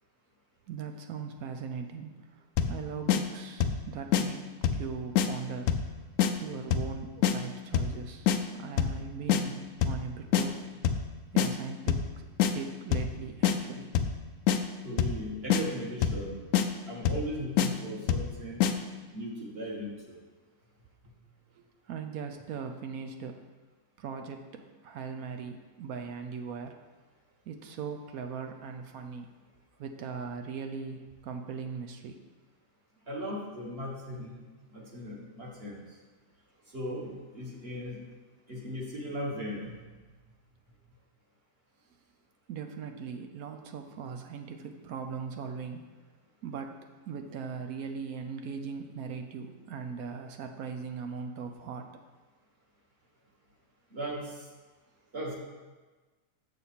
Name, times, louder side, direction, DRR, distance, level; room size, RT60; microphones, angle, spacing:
voice 1, 0.7-2.1 2.7-4.5 4.7-5.8 6.4-8.3 8.5-10.7 11.3-12.1 12.5-13.9 21.6-23.4 24.0-26.8 27.5-29.3 29.8-32.2 42.5-45.9 46.4-46.8 47.1-51.9, right 6 dB, 75° right, 5 dB, 1.0 m, -39 dB
sound 1, 2.6-2.8 3.1-3.2 3.6-3.8 4.1-4.2 4.6-4.9 5.2-5.3 5.7-5.9 6.2-6.3 6.7-6.9 7.2-7.4 7.7-8.0 8.3-8.4 8.8-9.0 9.3-9.4 9.8-10.0 10.3-10.5 10.8-11.1 11.4-11.5 11.9-12.1 12.4-12.5 12.9-13.1 13.4-13.6 13.9-14.2 14.5-14.6 15.0-15.2 15.5-15.6 16.0-16.2 16.5-16.7 17.1-17.3 17.6-17.7 18.1-18.3 18.6-18.7, left 9 dB, 70° left, 0.8 m, -25 dB
voice 2, 14.8-16.4 16.9-18.6 19.1-20.2 33.1-34.3 34.7-35.8 36.7-38.0 38.5-39.7 53.9-54.3 55.1-55.3, equal, 40° right, -3 dB, 1.6 m, -37 dB
6.8 x 6.5 x 4.3 m, 1.3 s
omnidirectional pair, 1.7 m